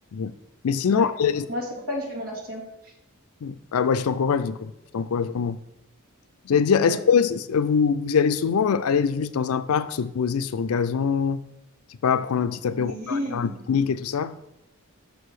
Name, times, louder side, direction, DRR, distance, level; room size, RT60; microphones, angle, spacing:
voice 1, 0.6-1.4 3.4-5.6 6.5-11.4 12.0-14.3, left 6 dB, 75° left, 0.4 m, -23 dB
voice 2, 1.5-2.6 6.8-7.0 12.8-13.6, equal, 90° right, 2.3 m, -32 dB
6.3 x 4.8 x 4.8 m
head